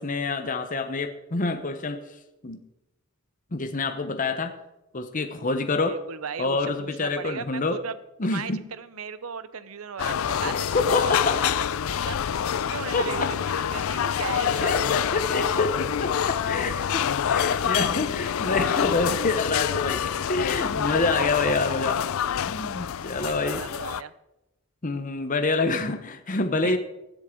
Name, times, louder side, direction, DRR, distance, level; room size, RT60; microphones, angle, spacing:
voice 1, 0.0-2.0 2.4-2.6 3.5-4.6 4.9-6.0 6.4-7.8 8.2-8.7 10.4-11.6 12.9-13.1 14.4-22.0 22.5-23.6 24.8-26.8, left 3 dB, 40° left, 7 dB, 0.9 m, -27 dB
voice 2, 5.9-8.0 8.2-11.5 11.9-12.2 12.5-14.7 23.2-24.1 26.6-26.8, right 6 dB, 80° right, 14 dB, 0.7 m, -37 dB
sound 1, 10.0-24.0, left 8 dB, 75° left, 0.4 m, -27 dB
23.0 x 7.9 x 3.8 m, 0.94 s
head